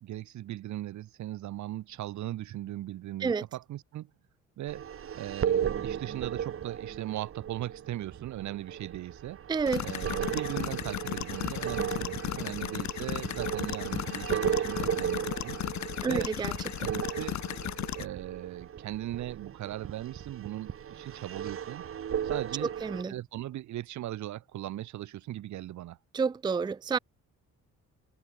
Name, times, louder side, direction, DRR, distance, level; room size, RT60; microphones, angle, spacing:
voice 1, 0.0-4.1 4.6-4.9 5.1-9.4 9.8-15.6 16.0-16.3 16.8-17.4 18.0-21.8 22.2-22.7 23.1-26.0, right 14 dB, 70° right, 0.9 m, -38 dB
sound 1, 4.7-23.0, right 9 dB, 45° right, 1.1 m, -35 dB
voice 2, 9.5-9.9 16.0-16.5 22.6-23.1 26.1-27.0, right 5 dB, 15° right, 0.4 m, -29 dB
sound 2, 9.7-18.0, left 13 dB, 65° left, 1.0 m, -35 dB
cardioid pair, 90°, 30 cm